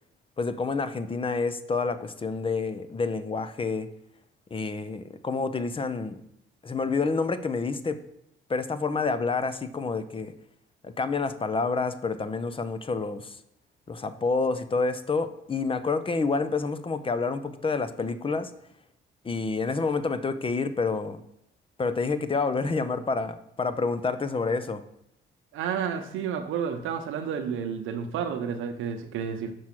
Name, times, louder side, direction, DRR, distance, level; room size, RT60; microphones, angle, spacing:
voice 1, 0.4-3.9 4.5-6.2 6.6-8.0 8.5-10.3 10.8-13.4 13.9-18.5 19.2-21.2 21.8-24.8, left 4 dB, 25° left, 12 dB, 0.6 m, -28 dB
voice 2, 25.5-29.5, right 7 dB, 85° right, 7 dB, 0.8 m, -31 dB
6.0 x 4.8 x 5.9 m, 0.79 s
cardioid pair, 90°, 20 cm